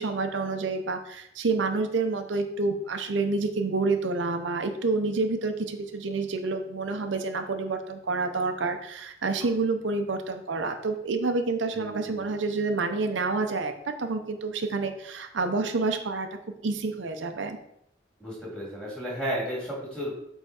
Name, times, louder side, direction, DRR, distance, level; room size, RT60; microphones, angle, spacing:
voice 1, 0.0-16.3 16.6-17.6, right 3 dB, 90° right, 5 dB, 0.7 m, -28 dB
voice 2, 11.7-12.3 18.2-20.1, equal, 5° left, -5 dB, 2.4 m, -33 dB
8.0 x 3.6 x 4.3 m, 0.75 s
head